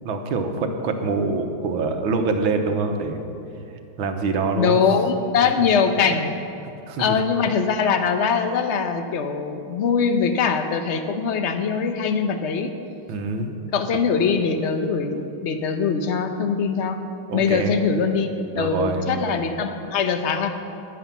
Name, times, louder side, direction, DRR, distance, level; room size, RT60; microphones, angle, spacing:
voice 1, 0.0-3.2 4.0-4.8 5.6-5.7 6.9-7.2 13.1-13.7 17.3-17.7 18.5-19.0, right 3 dB, 80° right, 5 dB, 1.9 m, -25 dB
voice 2, 4.6-6.4 7.0-12.7 13.7-17.0 17.3-20.5, left 5 dB, 55° left, 7 dB, 0.8 m, -22 dB
11.0 x 9.7 x 7.2 m, 2.8 s
omnidirectional pair, 2.2 m